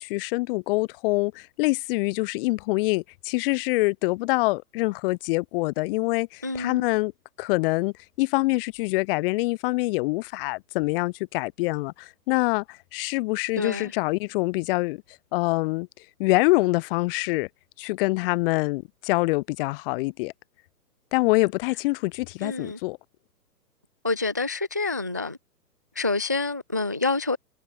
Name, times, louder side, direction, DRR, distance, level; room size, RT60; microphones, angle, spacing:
voice 1, 0.0-7.1 7.4-15.0 15.3-15.9 16.2-17.5 17.8-20.3 21.1-23.0, left 24 dB, 35° left, 6.8 m, -25 dB
voice 2, 6.4-6.9 13.6-13.9 22.4-22.8 24.0-25.4 26.0-27.4, left 3 dB, 15° right, 0.4 m, -27 dB
hypercardioid pair, 140°, 48 cm